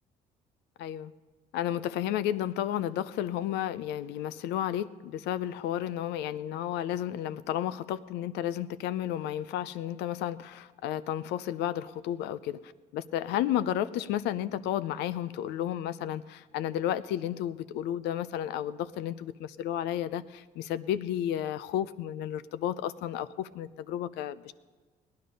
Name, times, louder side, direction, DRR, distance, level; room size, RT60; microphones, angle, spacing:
voice 1, 0.8-1.1 1.5-12.6 12.9-24.5, left 11 dB, 85° left, 14 dB, 0.6 m, -32 dB
18.5 x 10.5 x 5.3 m, 1.4 s
cardioid pair, 110°, 17 cm